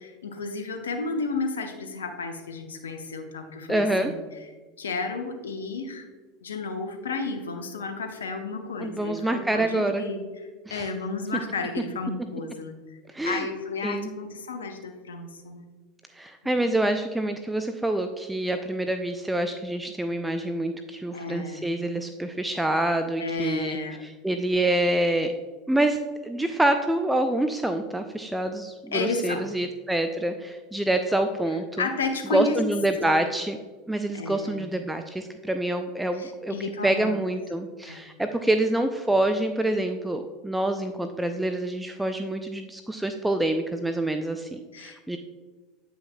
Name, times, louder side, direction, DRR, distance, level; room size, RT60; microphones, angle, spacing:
voice 1, 0.0-4.1 4.8-6.1 6.4-10.2 10.7-13.0 13.2-15.7 16.4-16.7 21.1-21.6 23.2-24.0 28.9-29.4 31.8-32.6 33.1-33.3 34.1-34.6 36.2-37.3 37.9-38.1 44.7-45.2, left 4 dB, 80° left, 6 dB, 0.7 m, -32 dB
voice 2, 3.7-4.1 8.8-10.1 10.7-10.9 13.1-13.5 13.8-14.1 16.1-25.3 25.7-26.0 26.2-31.9 32.3-33.6 33.9-45.2, right 1 dB, 5° right, 7 dB, 0.4 m, -26 dB
8.7 x 5.6 x 2.2 m, 1.4 s
figure-of-eight pair, 80°, 0 cm